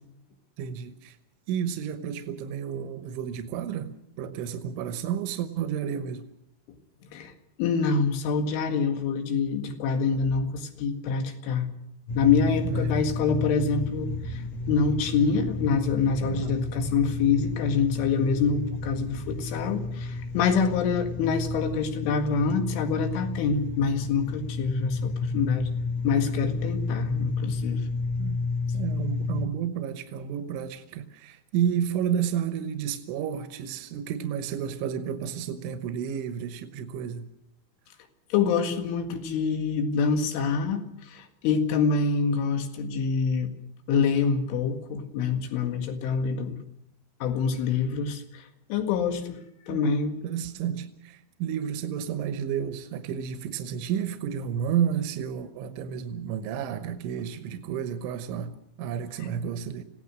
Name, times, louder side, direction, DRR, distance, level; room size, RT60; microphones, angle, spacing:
voice 1, 0.6-1.2 1.5-3.9 4.2-6.2 12.6-13.0 16.2-16.6 28.2-28.4 28.7-37.3 49.7-49.9 50.2-59.9, right 8 dB, 80° right, 9 dB, 3.5 m, -31 dB
voice 2, 7.6-11.7 12.2-25.7 26.0-27.9 38.3-43.5 43.9-46.6 47.2-49.4 49.7-50.2, left 5 dB, 90° left, 6 dB, 4.4 m, -26 dB
sound 1, 12.1-29.5, left 3 dB, 55° left, 1.9 m, -31 dB
26.5 x 17.5 x 6.3 m, 0.75 s
omnidirectional pair, 5.4 m